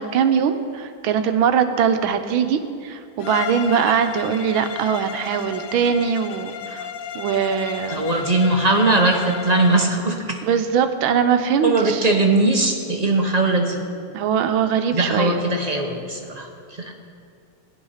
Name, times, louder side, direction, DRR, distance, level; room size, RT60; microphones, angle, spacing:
voice 1, 0.0-6.9 7.1-8.1 10.5-12.0 14.1-15.4, right 7 dB, 80° right, 8 dB, 1.6 m, -21 dB
Bowed string instrument, 3.2-10.0, left 9 dB, 75° left, 0.8 m, -33 dB
voice 2, 7.9-10.4 11.6-13.8 14.9-16.9, right 2 dB, 35° right, 2 dB, 0.7 m, -20 dB
15.0 x 10.5 x 5.7 m, 2.4 s
omnidirectional pair, 2.2 m